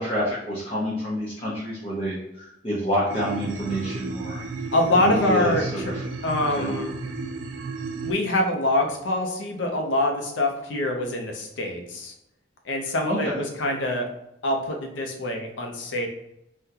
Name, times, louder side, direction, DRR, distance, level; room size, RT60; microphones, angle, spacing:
voice 1, 0.0-4.4 4.9-6.0 6.6-6.7 13.0-13.4, equal, 30° left, -9 dB, 0.7 m, -28 dB
sound 1, 3.1-8.1, right 3 dB, 85° right, 0.4 m, -33 dB
voice 2, 4.7-5.6 6.2-6.9 8.0-12.1 12.6-14.1 14.4-16.1, left 1 dB, 75° left, 3 dB, 0.6 m, -25 dB
3.6 x 2.2 x 2.7 m, 0.81 s
head